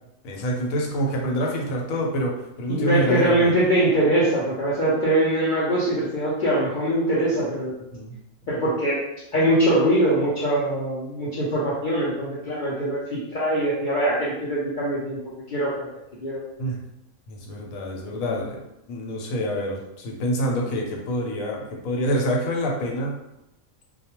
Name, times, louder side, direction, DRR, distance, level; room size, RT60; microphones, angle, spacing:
voice 1, 0.2-3.6 7.9-8.1 16.6-16.8 17.3-18.6 18.9-23.2, equal, 90° left, 0 dB, 1.0 m, -26 dB
voice 2, 2.7-7.7 8.5-9.0 9.3-15.2 15.5-15.9 16.2-16.4, right 1 dB, 60° left, -7 dB, 0.5 m, -22 dB
2.3 x 2.1 x 2.8 m, 0.88 s
omnidirectional pair, 1.4 m